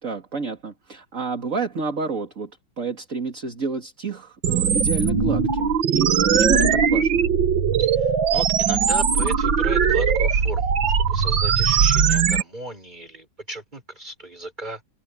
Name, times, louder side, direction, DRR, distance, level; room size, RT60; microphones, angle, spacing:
voice 1, 0.0-2.5 2.8-7.2, right 4 dB, 45° right, 2.8 m, -29 dB
sound 1, 4.4-12.4, right 6 dB, 90° right, 2.3 m, -20 dB
voice 2, 8.3-10.7 11.0-14.8, right 1 dB, 25° right, 6.5 m, -35 dB
omnidirectional pair, 2.0 m